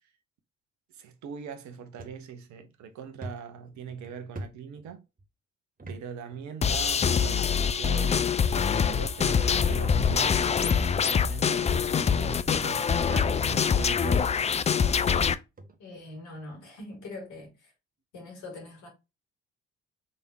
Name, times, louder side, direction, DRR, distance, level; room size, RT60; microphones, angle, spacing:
voice 1, 0.9-5.0 5.9-14.2, right 7 dB, 60° right, 1.0 m, -41 dB
sound 1, 2.0-2.2 2.6-2.7 3.2-5.2 5.8-6.0 6.3-6.4 7.2-7.7 8.6-9.1 10.0-10.1 11.0-11.1 11.4-12.6 13.0-13.3 14.1-14.2 14.6-14.7 15.0-15.1 15.6-15.8, right 2 dB, 25° right, 1.1 m, -44 dB
sound 2, 6.6-15.3, left 6 dB, 20° left, 0.4 m, -24 dB
voice 2, 15.8-17.7 18.1-18.9, left 2 dB, 60° left, 2.5 m, -43 dB
5.3 x 3.5 x 2.8 m
figure-of-eight pair, 45°, 33 cm